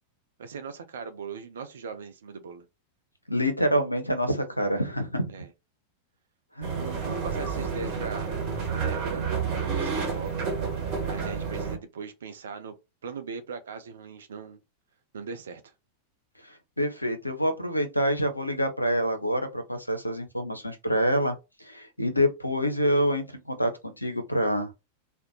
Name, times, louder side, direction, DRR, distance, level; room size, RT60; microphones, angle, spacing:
voice 1, 0.4-2.6 5.3-5.5 6.7-8.4 8.7-9.3 9.6-10.5 11.0-12.7 13.0-14.6 15.1-15.6, right 5 dB, 65° right, 0.5 m, -39 dB
voice 2, 3.3-5.3 6.6-6.7 16.8-21.4 21.6-24.7, equal, 85° left, 0.6 m, -26 dB
sound 1, 6.6-11.8, right 5 dB, 40° right, 1.0 m, -30 dB
2.5 x 2.1 x 2.9 m
figure-of-eight pair, 90°, 0 cm